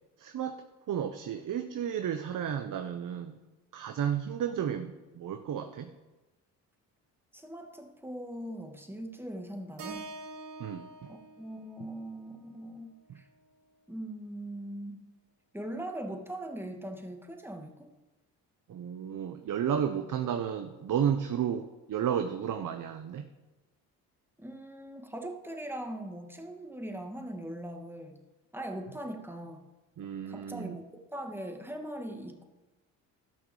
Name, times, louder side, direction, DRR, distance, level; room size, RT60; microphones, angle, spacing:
voice 1, 0.2-3.4 3.7-5.9 10.6-11.1 13.1-13.2 18.7-23.3 30.0-30.8, right 8 dB, 50° right, 7 dB, 0.9 m, -33 dB
voice 2, 7.3-10.1 11.1-13.2 13.9-15.0 15.5-17.9 24.4-28.2 28.5-29.7 30.3-32.4, right 1 dB, 5° right, 3 dB, 2.2 m, -40 dB
Keyboard (musical), 9.8-14.0, right 3 dB, 80° right, 2.2 m, -47 dB
13.5 x 6.1 x 7.2 m, 1.1 s
supercardioid pair, 60°, 40 cm